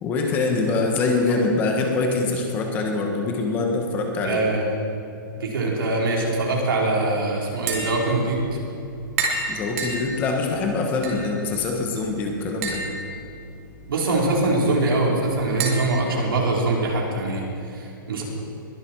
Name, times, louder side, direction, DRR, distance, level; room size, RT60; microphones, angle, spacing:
voice 1, 0.0-4.4 9.5-12.8, left 3 dB, 15° left, 2 dB, 1.2 m, -24 dB
voice 2, 4.2-4.8 5.4-8.5 13.9-18.2, right 2 dB, 85° right, -2 dB, 4.2 m, -23 dB
Tap, 7.5-17.0, right 3 dB, 40° right, 2.9 m, -33 dB
21.5 x 11.5 x 4.6 m, 2.6 s
hypercardioid pair, 175°, 12 cm